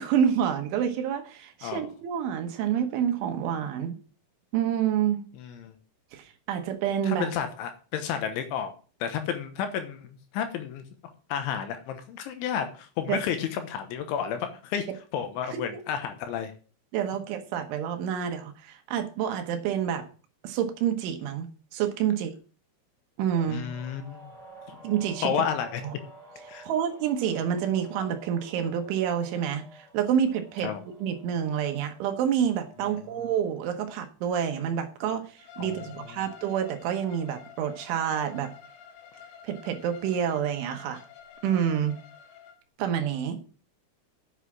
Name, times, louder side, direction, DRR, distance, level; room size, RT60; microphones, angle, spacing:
voice 1, 0.0-4.0 4.5-5.2 6.1-7.3 13.1-13.2 15.5-15.8 16.9-20.0 20.4-22.4 23.2-23.7 24.8-25.3 25.8-25.9 26.6-30.7 31.0-38.5 39.4-41.0 41.4-42.0 42.8-43.4, right 9 dB, 75° right, 6 dB, 3.4 m, -28 dB
voice 2, 5.4-5.8 7.0-8.7 9.0-10.8 11.3-14.9 15.1-16.5 23.5-24.3 24.7-24.8 25.2-25.8 26.5-26.6 30.6-30.9 32.9-33.3 35.6-36.2, left 8 dB, 75° left, 8 dB, 3.2 m, -32 dB
sound 1, 23.3-33.6, right 2 dB, 10° right, 2.9 m, -51 dB
Bowed string instrument, 35.4-42.6, left 8 dB, 90° left, 4.2 m, -49 dB
8.2 x 8.2 x 6.1 m, 0.38 s
omnidirectional pair, 5.9 m